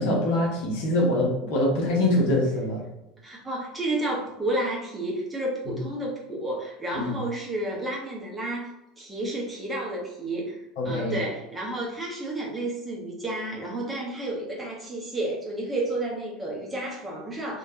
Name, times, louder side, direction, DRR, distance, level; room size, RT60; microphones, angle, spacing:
voice 1, 0.0-2.8 6.9-7.2 10.8-11.2, left 1 dB, 55° left, -3 dB, 1.2 m, -24 dB
voice 2, 3.2-17.6, right 1 dB, 15° right, -3 dB, 1.2 m, -31 dB
3.4 x 2.8 x 2.8 m, 0.91 s
figure-of-eight pair, 70°, 0 cm